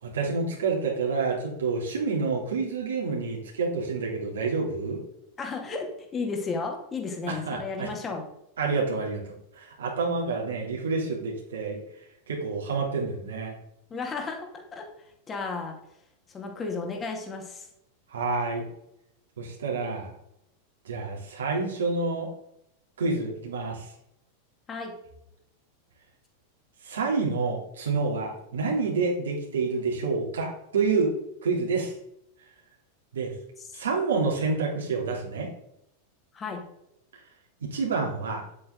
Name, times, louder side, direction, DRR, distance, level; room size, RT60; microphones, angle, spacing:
voice 1, 0.0-5.0 7.3-7.9 8.6-11.8 12.3-13.5 18.1-18.6 19.4-20.1 20.8-22.3 23.0-23.9 26.8-31.1 31.4-31.9 33.1-33.3 33.7-35.5 37.6-38.4, right 4 dB, 65° right, -2 dB, 3.3 m, -28 dB
voice 2, 5.4-8.3 13.9-14.9 15.3-15.8 16.3-17.7 24.7-24.9 36.3-36.7, left 4 dB, 20° left, 3 dB, 2.5 m, -33 dB
10.5 x 8.4 x 4.0 m, 0.80 s
figure-of-eight pair, 90°, 0 cm